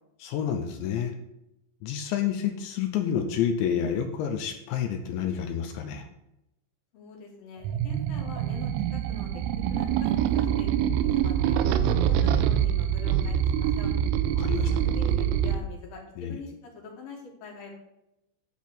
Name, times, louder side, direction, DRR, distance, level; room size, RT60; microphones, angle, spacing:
voice 1, 0.2-1.1 1.8-6.1 14.4-14.7 16.2-16.4, left 8 dB, 80° left, 5 dB, 2.8 m, -29 dB
voice 2, 6.9-9.3 9.7-10.7 11.0-13.9 14.7-17.8, left 3 dB, 55° left, 0 dB, 3.1 m, -43 dB
sound 1, 7.7-15.6, right 9 dB, 85° right, 3.1 m, -25 dB
10.5 x 4.2 x 7.1 m, 0.86 s
omnidirectional pair, 5.8 m